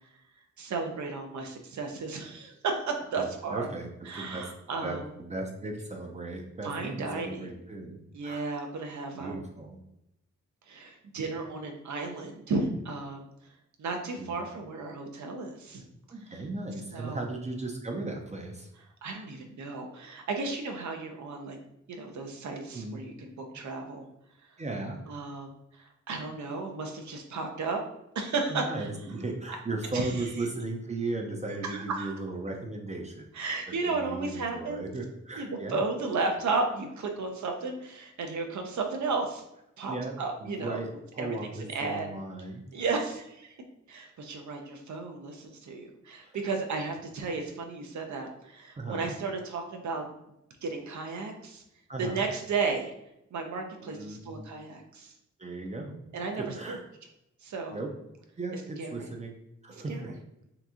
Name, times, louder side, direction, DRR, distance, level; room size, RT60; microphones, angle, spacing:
voice 1, 0.6-3.7 4.1-5.1 6.6-7.5 8.1-9.4 10.7-13.3 13.8-15.8 16.3-16.4 16.9-17.3 19.0-21.6 21.9-24.1 25.1-27.8 28.1-28.9 29.9-30.1 31.6-32.1 33.3-34.9 35.4-39.4 39.8-40.8 41.2-42.1 42.7-43.5 43.9-50.1 50.6-51.6 52.0-52.9 53.3-55.1 56.1-56.8 57.4-57.8 58.8-59.1 59.7-60.1, right 4 dB, 75° right, 3 dB, 0.6 m, -34 dB
voice 2, 3.2-3.9 4.2-4.4 4.8-8.4 9.2-9.8 14.2-14.5 16.1-18.7 22.7-23.0 23.5-23.6 24.6-25.0 28.5-33.3 33.8-35.8 39.9-42.6 46.2-46.4 48.8-49.1 51.9-52.3 53.8-54.4 55.4-55.9 56.4-56.8 57.7-57.9 58.4-59.3 59.6-60.2, right 2 dB, 25° right, 2 dB, 0.4 m, -36 dB
2.9 x 2.5 x 3.5 m, 0.83 s
wide cardioid pair, 110°, 29 cm